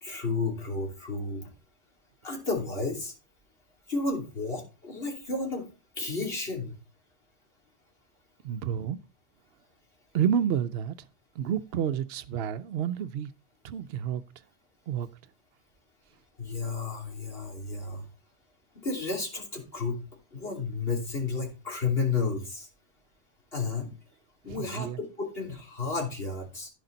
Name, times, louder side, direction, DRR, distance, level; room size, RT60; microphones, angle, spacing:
voice 1, 0.0-1.5 2.2-3.1 3.9-5.7 6.0-6.8 16.4-18.1 18.8-20.0 20.3-22.7 23.5-23.9 24.4-26.7, left 4 dB, 55° left, 3.3 m, -32 dB
voice 2, 8.4-9.0 10.1-11.1 11.4-13.3 13.6-14.2 14.9-15.1 24.6-25.0, right 9 dB, 65° right, 0.8 m, -29 dB
15.0 x 5.2 x 3.9 m
omnidirectional pair, 1.2 m